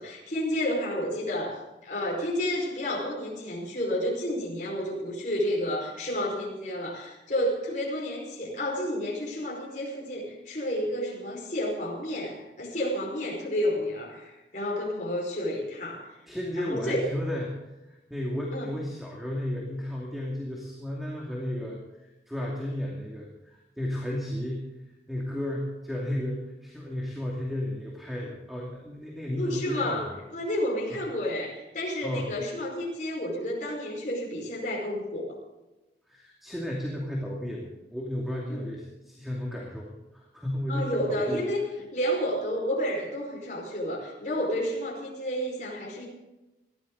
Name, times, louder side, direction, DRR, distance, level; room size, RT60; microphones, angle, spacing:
voice 1, 0.0-16.1 16.6-17.1 18.5-18.7 29.4-30.1 30.3-35.4 38.5-38.6 40.7-41.6 41.9-46.1, equal, 45° left, -2 dB, 5.1 m, -30 dB
voice 2, 16.3-17.5 17.8-24.7 25.1-30.2 30.9-31.0 32.0-32.3 36.1-41.4, left 1 dB, ahead, -3 dB, 2.4 m, -33 dB
20.0 x 15.0 x 4.0 m, 1.0 s
head